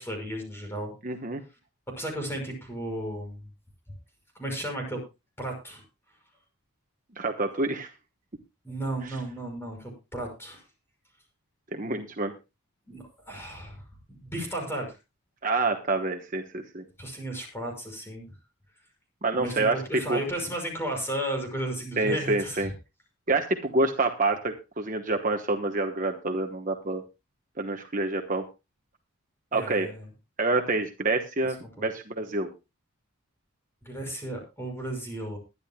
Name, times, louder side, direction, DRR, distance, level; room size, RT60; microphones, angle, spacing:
voice 1, 0.0-0.9 2.0-3.4 4.4-5.0 5.4-5.8 8.6-10.6 12.9-13.8 14.1-14.9 17.0-18.3 19.3-22.7 29.5-30.1 31.4-31.9 33.8-35.4, right 1 dB, 10° left, 2 dB, 6.0 m, -34 dB
voice 2, 1.0-1.4 7.2-7.9 9.0-9.1 11.7-12.3 15.4-16.8 19.2-19.8 20.1-20.2 22.0-22.7 23.3-27.0 27.6-28.4 29.5-29.9 30.4-32.5, right 2 dB, 35° right, 5 dB, 1.1 m, -27 dB
22.0 x 10.5 x 2.3 m, 0.27 s
head